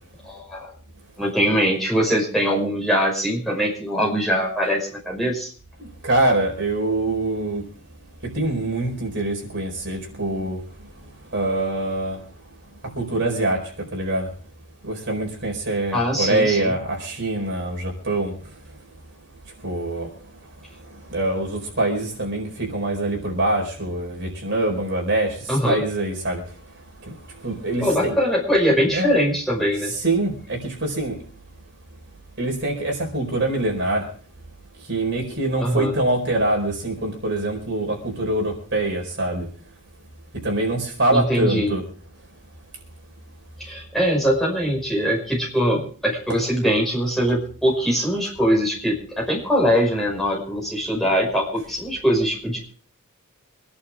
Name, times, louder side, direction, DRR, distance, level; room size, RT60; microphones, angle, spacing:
voice 1, 0.2-0.7 1.2-5.5 15.9-16.7 25.5-25.8 27.8-29.9 35.6-35.9 41.1-41.7 43.6-52.6, equal, ahead, -3 dB, 5.5 m, -22 dB
voice 2, 5.8-7.6 8.3-10.6 11.3-12.2 12.9-14.3 14.8-18.3 19.6-20.1 20.9-26.4 27.0-28.2 28.9-29.1 29.8-31.2 32.4-34.1 34.9-39.5 40.4-41.8 46.3-46.4, right 2 dB, 50° right, 1 dB, 4.8 m, -24 dB
25.5 x 11.0 x 3.6 m, 0.42 s
head